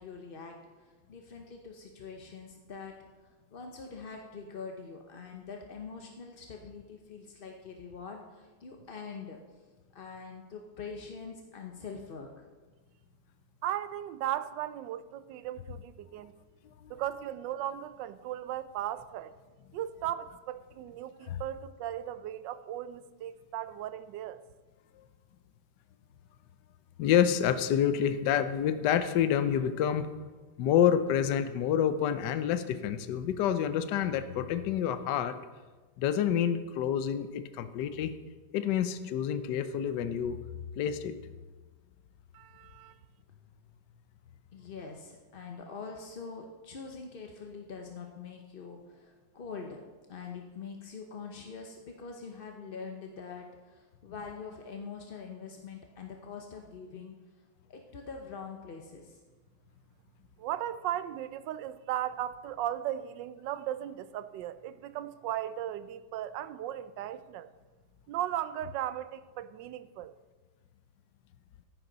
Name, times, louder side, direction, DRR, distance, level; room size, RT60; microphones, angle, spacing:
voice 1, 0.0-9.4 9.9-12.5 44.5-49.8 50.1-57.2 57.7-59.2, left 5 dB, 45° left, 0.7 m, -44 dB
voice 2, 13.6-16.3 16.9-19.4 19.7-24.4 42.3-43.0 60.4-67.5 68.1-70.1, right 12 dB, 80° right, 1.2 m, -36 dB
voice 3, 27.0-30.1 30.6-35.4 36.0-38.1 38.5-40.4 40.8-41.1, left 9 dB, 70° left, 1.3 m, -28 dB
14.0 x 10.5 x 4.0 m
omnidirectional pair, 2.0 m